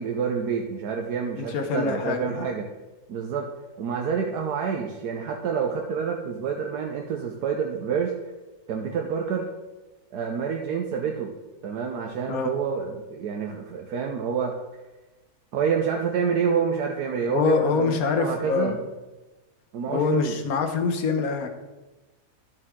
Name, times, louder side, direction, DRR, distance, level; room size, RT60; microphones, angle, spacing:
voice 1, 0.0-2.7 3.1-3.5 3.8-8.1 8.7-9.4 10.1-11.3 11.6-14.5 15.5-18.8 19.7-20.3, right 6 dB, 85° right, 2 dB, 1.4 m, -28 dB
voice 2, 1.4-2.4 12.3-12.5 17.3-18.8 19.9-21.5, left 5 dB, 70° left, 6 dB, 1.4 m, -25 dB
12.0 x 6.6 x 3.7 m, 1.1 s
omnidirectional pair, 1.6 m